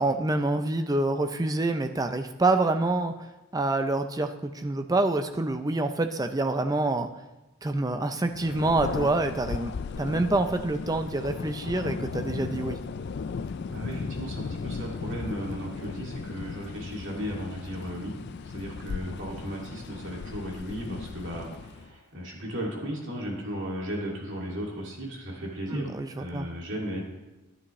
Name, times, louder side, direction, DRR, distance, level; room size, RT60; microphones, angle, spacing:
voice 1, 0.0-3.1 3.5-7.1 7.6-9.7 10.0-12.8 25.7-26.5, right 2 dB, 15° right, 7 dB, 0.4 m, -26 dB
Thunder, 8.3-21.9, left 5 dB, 50° left, 0.3 m, -36 dB
voice 2, 13.7-18.1 18.5-25.9 26.2-27.0, equal, 55° right, -2 dB, 2.4 m, -35 dB
11.0 x 9.8 x 3.1 m, 1.0 s
head